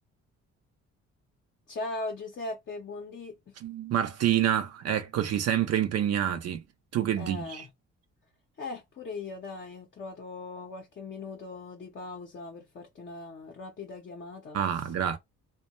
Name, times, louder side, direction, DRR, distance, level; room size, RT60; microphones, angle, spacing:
voice 1, 1.7-3.5 7.2-7.7 8.6-14.9, left 3 dB, 40° left, 0.6 m, -39 dB
voice 2, 3.6-6.6 6.9-7.6 14.5-15.2, right 10 dB, 55° right, 0.4 m, -27 dB
2.2 x 2.1 x 2.9 m
cardioid pair, 90°, 30 cm